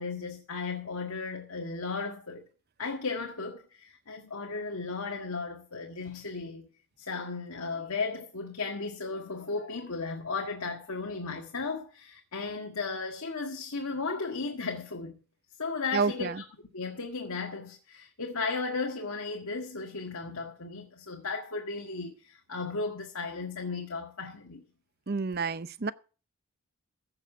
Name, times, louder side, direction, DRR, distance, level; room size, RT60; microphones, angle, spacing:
voice 1, 0.0-2.4 2.8-6.7 7.0-15.1 15.6-16.4 16.7-24.6, left 4 dB, 80° left, 1.8 m, -35 dB
voice 2, 15.9-16.4 25.1-25.9, right 4 dB, 45° right, 0.6 m, -29 dB
15.5 x 6.8 x 6.0 m
head